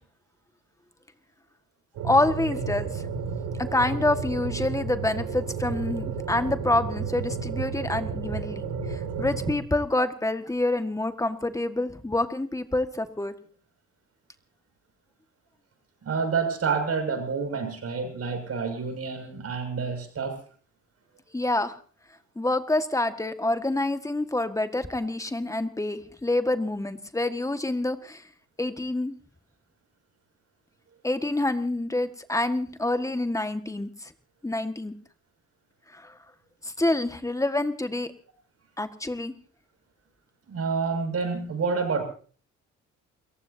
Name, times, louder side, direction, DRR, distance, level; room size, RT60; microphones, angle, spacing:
voice 1, 2.0-3.0 3.6-13.3 21.3-21.8 22.4-28.2 28.6-29.1 31.0-34.1 34.4-34.9 35.9-36.1 36.6-38.1 38.8-39.3, left 2 dB, 10° left, 9 dB, 1.7 m, -27 dB
sound 1, 2.0-9.5, right 5 dB, 85° right, 2.7 m, -32 dB
voice 2, 16.0-20.4 40.5-42.0, right 5 dB, 55° right, 6 dB, 6.5 m, -28 dB
29.0 x 15.5 x 2.8 m, 0.43 s
cardioid pair, 90°, 30 cm